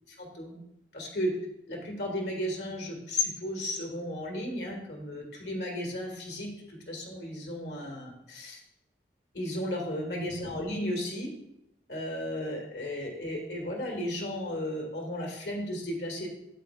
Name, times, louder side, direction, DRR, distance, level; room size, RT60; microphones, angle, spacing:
voice 1, 0.2-0.6 0.9-1.3 1.7-8.6 9.3-11.3 11.9-16.3, left 1 dB, 75° left, 0 dB, 2.1 m, -34 dB
9.1 x 8.1 x 2.5 m, 0.83 s
head